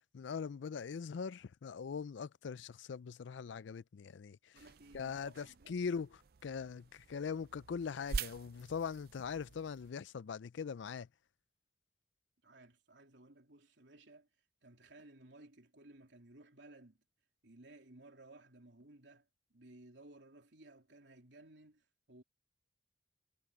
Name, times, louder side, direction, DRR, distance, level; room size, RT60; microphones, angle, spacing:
voice 1, 0.1-4.4 4.9-6.1 6.4-11.1, left 6 dB, 80° left, 0.4 m, -41 dB
sound 1, 4.5-9.9, right 5 dB, 55° right, 0.5 m, -46 dB
voice 2, 4.5-5.8 12.4-14.3 14.6-17.0 17.4-22.2, right 2 dB, 75° right, 3.3 m, -58 dB
head